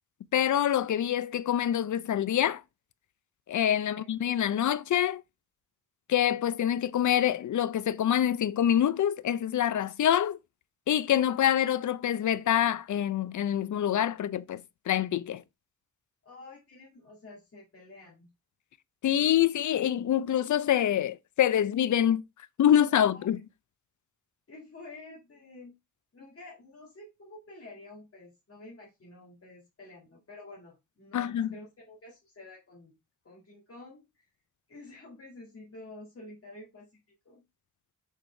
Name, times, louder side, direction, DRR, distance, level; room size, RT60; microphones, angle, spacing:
voice 1, 0.3-2.6 3.5-5.2 6.1-10.4 10.9-15.4 19.0-22.2 22.6-23.4 31.1-31.5, left 10 dB, 70° left, 0.5 m, -26 dB
voice 2, 16.2-18.3 23.0-23.3 24.5-25.8 26.1-33.0 33.2-34.3 34.7-36.9 37.2-37.4, left 2 dB, 45° left, 2.0 m, -49 dB
6.6 x 4.7 x 3.2 m
wide cardioid pair, 105°, 31 cm